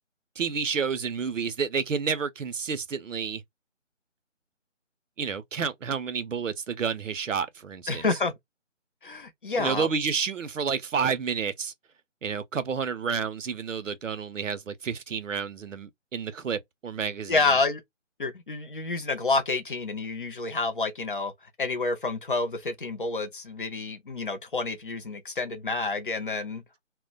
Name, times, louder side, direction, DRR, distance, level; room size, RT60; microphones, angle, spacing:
voice 1, 0.4-3.4 5.2-8.0 9.6-11.7 12.2-17.5, right 6 dB, 80° right, 0.7 m, -30 dB
voice 2, 7.9-8.3 9.0-9.9 17.3-17.8 18.2-26.6, left 3 dB, 45° left, 0.6 m, -29 dB
2.2 x 2.1 x 3.7 m
figure-of-eight pair, 160°, 38 cm